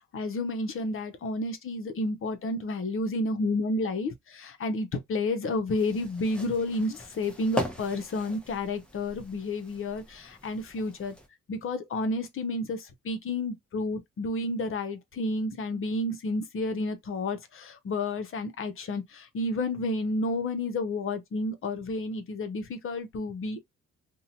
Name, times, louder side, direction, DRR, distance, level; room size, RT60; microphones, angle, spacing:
voice 1, 0.1-11.1 11.5-23.6, left 2 dB, 45° left, 0.7 m, -31 dB
sound 1, 5.7-11.3, left 1 dB, 5° left, 0.7 m, -39 dB
2.7 x 2.1 x 2.7 m
cardioid pair, 90°, 30 cm